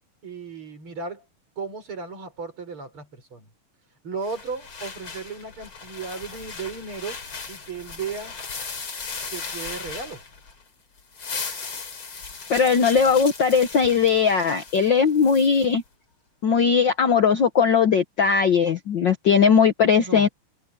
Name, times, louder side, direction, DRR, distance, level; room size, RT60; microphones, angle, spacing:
voice 1, 0.2-1.2 1.6-3.5 4.0-7.2 7.5-8.4 9.3-10.2 20.0-20.3, right 4 dB, 40° right, 5.9 m, -35 dB
sound 1, 4.2-10.6 11.0-15.7, left 5 dB, 40° left, 3.9 m, -37 dB
voice 2, 12.5-15.8 16.4-20.3, left 6 dB, 75° left, 1.0 m, -19 dB
omnidirectional pair, 3.6 m